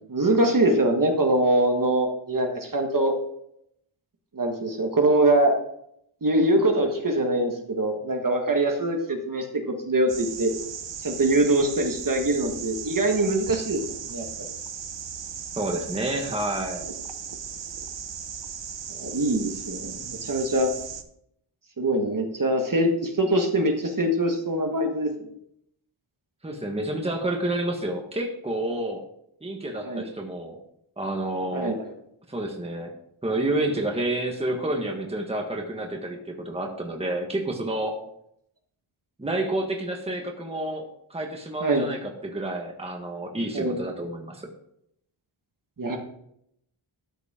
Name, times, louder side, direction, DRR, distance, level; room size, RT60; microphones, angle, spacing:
voice 1, 0.1-3.1 4.3-5.6 6.2-10.5 11.0-13.8 14.1-14.2 19.0-20.7 21.8-25.1 29.8-30.0 31.5-31.8 41.6-41.9 43.5-43.8 45.8-46.0, right 1 dB, 40° right, 3 dB, 1.6 m, -23 dB
sound 1, 10.1-21.0, right 7 dB, 60° right, 1.0 m, -37 dB
voice 2, 15.5-16.9 26.4-29.0 29.4-30.6 31.0-31.8 32.3-32.9 33.2-37.9 39.2-44.5, right 1 dB, 10° right, 1 dB, 1.4 m, -29 dB
13.0 x 8.1 x 3.7 m, 0.73 s
wide cardioid pair, 145°, 49 cm